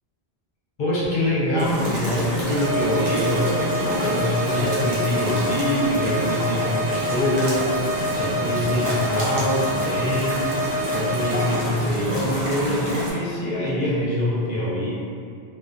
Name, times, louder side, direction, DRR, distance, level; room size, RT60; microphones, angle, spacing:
voice 1, 0.8-7.9 8.1-10.4 10.9-14.9, left 1 dB, 65° left, -7 dB, 0.7 m, -24 dB
sound 1, 1.6-13.1, equal, 50° right, 0.5 m, -28 dB
sound 2, 2.6-11.6, equal, 90° right, 0.9 m, -27 dB
2.2 x 2.2 x 2.5 m, 2.4 s
omnidirectional pair, 1.1 m